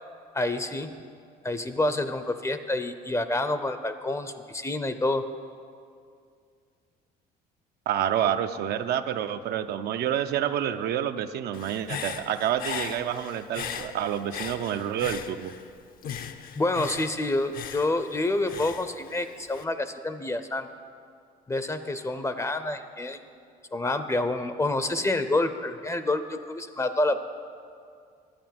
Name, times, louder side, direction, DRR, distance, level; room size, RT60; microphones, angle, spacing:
voice 1, 0.3-0.9 1.4-5.3 16.6-20.7 21.5-23.2 23.7-27.2, left 2 dB, 15° left, 10 dB, 0.5 m, -28 dB
voice 2, 7.9-15.5, right 10 dB, 70° right, 9 dB, 0.6 m, -28 dB
Human voice / Breathing, 11.5-15.7 16.0-19.6, left 7 dB, 60° left, 0.7 m, -38 dB
11.5 x 8.7 x 7.6 m, 2.3 s
cardioid pair, 110°, 17 cm